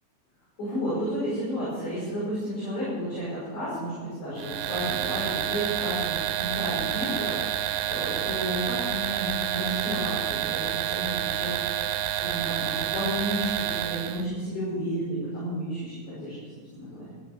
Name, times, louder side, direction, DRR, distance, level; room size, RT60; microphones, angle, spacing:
voice 1, 0.6-11.9 12.2-16.3 16.7-17.1, equal, 40° left, -10 dB, 6.8 m, -32 dB
sound 1, 4.4-14.3, right 12 dB, 85° right, 3.5 m, -29 dB
13.5 x 11.0 x 7.2 m, 1.5 s
omnidirectional pair, 5.8 m